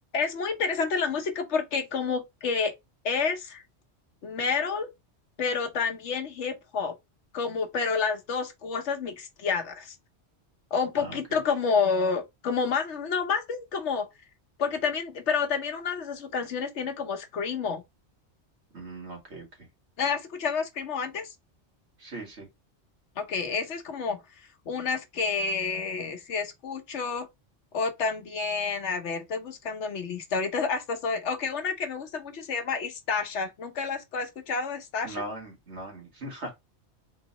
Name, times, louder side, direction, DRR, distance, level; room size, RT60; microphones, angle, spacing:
voice 1, 0.1-2.7 3.0-3.6 4.2-4.9 5.4-7.0 7.3-9.9 10.7-14.1 14.6-17.8 20.0-21.3 23.2-24.2 24.7-27.3 27.7-35.2, left 5 dB, 75° left, 1.2 m, -29 dB
voice 2, 18.7-19.4 22.0-22.5 35.0-36.5, right 1 dB, 65° right, 2.0 m, -39 dB
3.8 x 2.8 x 4.0 m
omnidirectional pair, 1.2 m